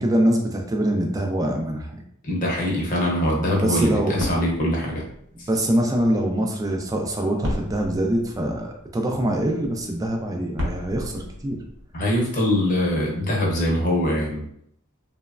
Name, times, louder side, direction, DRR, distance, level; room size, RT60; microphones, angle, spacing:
voice 1, 0.0-2.0 3.6-4.2 5.3-11.6, right 1 dB, 15° right, 2 dB, 0.3 m, -24 dB
voice 2, 2.2-5.0 5.4-5.5 11.9-14.4, left 1 dB, 40° left, -2 dB, 0.7 m, -23 dB
sound 1, 4.1-13.0, equal, 60° right, 0.8 m, -36 dB
3.0 x 2.1 x 2.3 m, 0.70 s
head